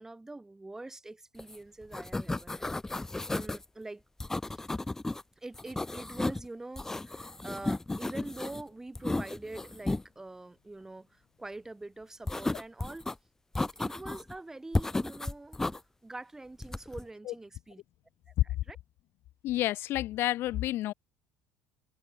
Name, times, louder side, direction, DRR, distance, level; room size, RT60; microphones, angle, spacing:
voice 1, 0.0-4.0 4.5-4.7 5.4-13.1 13.6-17.8 18.7-18.8, right 2 dB, 10° right, 5.9 m, -45 dB
sound 1, 1.4-1.6 1.8-3.6 4.2-5.2 5.5-6.5 6.8-8.6 9.0-10.0 12.3-13.1 13.6-14.3 14.7-15.8 16.6-17.0, left 2 dB, 10° left, 2.5 m, -33 dB
voice 2, 19.4-20.9, left 15 dB, 55° left, 3.4 m, -30 dB
cardioid pair, 120°, 5 cm